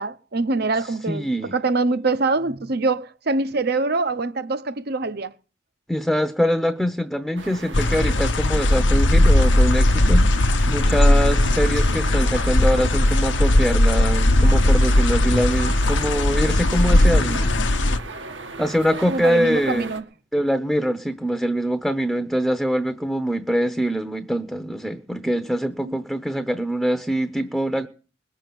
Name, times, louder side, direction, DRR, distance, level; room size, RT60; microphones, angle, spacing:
voice 1, 0.0-5.3 19.1-20.0 25.8-26.0, right 3 dB, 55° right, 0.8 m, -24 dB
voice 2, 1.1-1.5 5.9-10.3 10.7-17.6 18.6-19.9 20.3-27.9, equal, ahead, 0.8 m, -24 dB
sound 1, 7.4-20.0, right 3 dB, 85° right, 1.9 m, -38 dB
sound 2, 7.7-18.0, left 1 dB, 75° left, 0.9 m, -18 dB
21.0 x 7.0 x 7.7 m
head